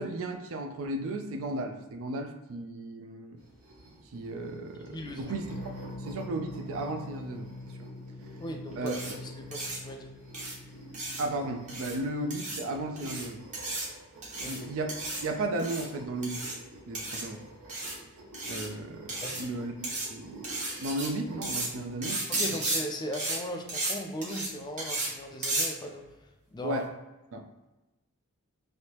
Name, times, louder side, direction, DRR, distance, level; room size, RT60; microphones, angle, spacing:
voice 1, 0.0-3.4 4.1-5.5 5.8-7.5 7.8-7.9 8.8-9.2 11.2-13.4 14.4-14.9 15.2-16.4 16.9-17.4 18.5-20.5 20.8-22.5 26.6-26.9 27.3-27.4, right 2 dB, 65° right, 5 dB, 0.4 m, -35 dB
sound 1, 3.4-22.0, right 1 dB, 80° right, 0.9 m, -50 dB
voice 2, 4.9-5.4 8.2-10.1 14.4-14.6 19.2-19.5 22.3-26.8, equal, 20° left, 3 dB, 0.3 m, -38 dB
sound 2, 5.5-12.4, left 2 dB, 85° left, 0.6 m, -45 dB
sound 3, 8.9-9.1 9.5-9.8 10.3-10.5 10.9-11.2 11.7-12.0 12.3-12.6 13.0-13.3 13.5-13.9 14.2-14.6 14.9-15.2 15.6-15.9 16.2-16.5 16.9-17.2 17.7-17.9 18.3-18.7 19.1-19.4 19.8-20.1 20.4-21.1 21.4-21.7 22.0-22.8 23.1-23.4 23.7-23.9 24.2-24.5 24.8-25.1 25.4-25.7, right 2 dB, 35° right, 0.9 m, -33 dB
3.3 x 2.6 x 2.9 m, 1.1 s
head